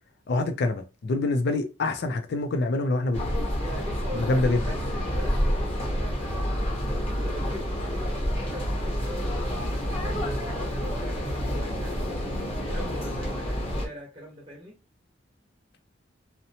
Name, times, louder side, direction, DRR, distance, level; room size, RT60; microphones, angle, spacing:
voice 1, 0.3-3.5 4.1-4.6, left 2 dB, 60° left, 0.4 m, -26 dB
sound 1, 3.1-13.9, equal, 30° left, 0.8 m, -28 dB
voice 2, 3.6-6.8 7.1-10.2 10.6-12.4 12.6-14.7, equal, 30° right, 0.9 m, -42 dB
2.7 x 2.1 x 2.7 m
head